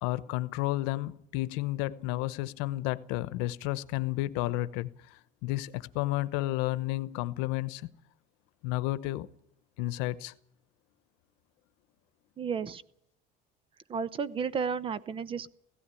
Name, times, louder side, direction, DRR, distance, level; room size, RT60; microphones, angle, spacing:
voice 1, 0.0-7.9 8.6-9.3 9.8-10.3, left 17 dB, 85° left, 1.0 m, -32 dB
voice 2, 12.4-12.8 13.9-15.5, right 6 dB, 30° right, 0.9 m, -32 dB
16.5 x 16.0 x 9.8 m
cardioid pair, 140°, 18 cm